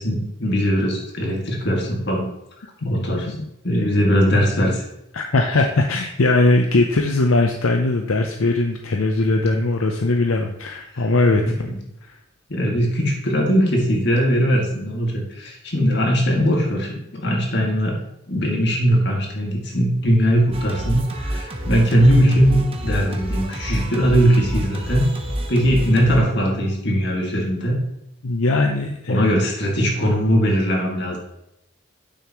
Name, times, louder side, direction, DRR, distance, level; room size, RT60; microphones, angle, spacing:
voice 1, 0.0-2.3 2.8-3.3 3.6-4.8 10.9-11.1 11.4-11.8 12.5-17.9 18.3-25.1 25.5-27.8 29.1-31.2, equal, 50° left, 0 dB, 2.1 m, -20 dB
voice 2, 2.8-3.5 3.8-3.9 5.1-11.4 12.1-12.2 28.2-29.3, left 2 dB, 75° left, 3 dB, 0.7 m, -20 dB
Singing, 20.5-26.2, right 1 dB, 25° right, 0.9 m, -28 dB
9.4 x 7.0 x 3.1 m, 0.84 s
head